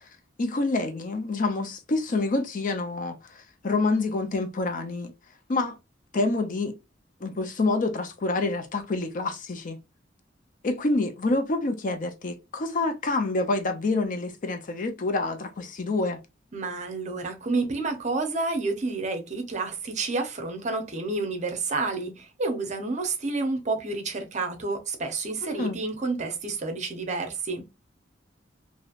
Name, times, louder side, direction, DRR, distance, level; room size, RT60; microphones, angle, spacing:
voice 1, 0.4-5.1 5.5-5.8 6.1-6.7 7.2-9.8 10.6-16.2 25.4-25.8, left 3 dB, 45° left, 0.5 m, -27 dB
voice 2, 16.5-27.7, right 3 dB, 40° right, 0.7 m, -29 dB
3.1 x 2.6 x 2.4 m
head